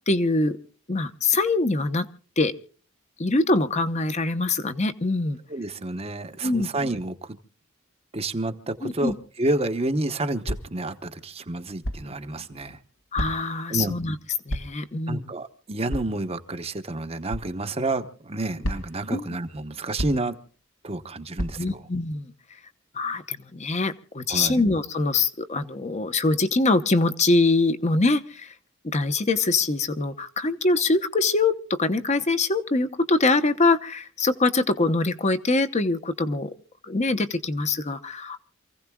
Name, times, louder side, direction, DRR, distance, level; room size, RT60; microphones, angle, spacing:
voice 1, 0.1-0.6 0.9-2.1 2.4-2.5 3.2-5.4 6.4-6.7 8.8-9.2 13.1-14.2 14.5-15.3 19.1-19.3 21.6-22.3 22.9-28.5 28.8-36.5 36.8-38.4, left 3 dB, 35° left, 11 dB, 1.0 m, -23 dB
voice 2, 5.5-7.4 8.1-12.8 13.7-14.0 15.1-20.4 20.8-21.8 24.3-24.6, right 2 dB, 30° right, 8 dB, 1.0 m, -29 dB
sound 1, 10.5-10.8 11.8-12.1 13.2-13.6 14.5-14.9 15.9-16.1 17.3-17.5 18.6-19.1 20.0-20.3 21.4-21.6, equal, 70° left, 1.4 m, -31 dB
28.0 x 16.0 x 2.3 m, 0.42 s
head